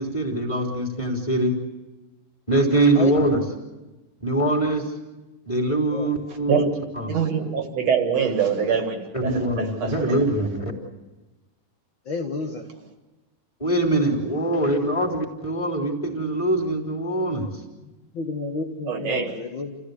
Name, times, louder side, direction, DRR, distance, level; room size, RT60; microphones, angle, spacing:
voice 1, 0.0-1.5 2.5-3.4 4.2-4.9 5.4-6.7 6.9-7.1 9.1-10.7 13.6-17.5, right 1 dB, 10° left, -3 dB, 3.3 m, -23 dB
voice 2, 7.1-7.5 7.9-10.1 18.9-19.3, right 7 dB, 50° right, 5 dB, 2.7 m, -24 dB
voice 3, 12.1-12.6 18.2-19.7, left 4 dB, 55° left, 3 dB, 1.3 m, -30 dB
29.0 x 15.5 x 8.3 m, 1.1 s
omnidirectional pair, 4.2 m